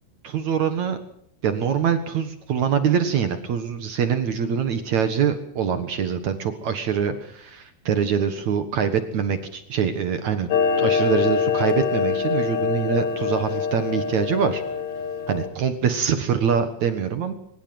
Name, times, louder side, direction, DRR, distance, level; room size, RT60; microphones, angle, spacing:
voice 1, 0.2-1.0 1.4-10.5 10.8-14.6 15.3-17.3, right 7 dB, 55° right, 9 dB, 2.5 m, -24 dB
Clock, 10.5-15.5, left 6 dB, 75° left, 4.1 m, -24 dB
24.0 x 20.0 x 7.8 m, 0.67 s
omnidirectional pair, 4.4 m